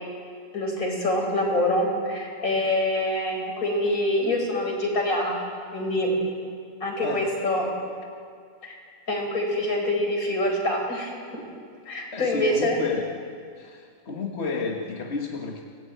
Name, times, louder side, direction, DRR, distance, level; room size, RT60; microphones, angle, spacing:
voice 1, 0.5-5.4 5.7-6.1 6.8-7.7 8.6-8.8 9.1-11.1 11.9-12.8, left 1 dB, 85° left, 1 dB, 5.4 m, -25 dB
voice 2, 12.1-13.0 13.6-15.6, left 4 dB, 50° left, 1 dB, 1.9 m, -31 dB
26.0 x 18.0 x 9.3 m, 2.2 s
omnidirectional pair, 1.4 m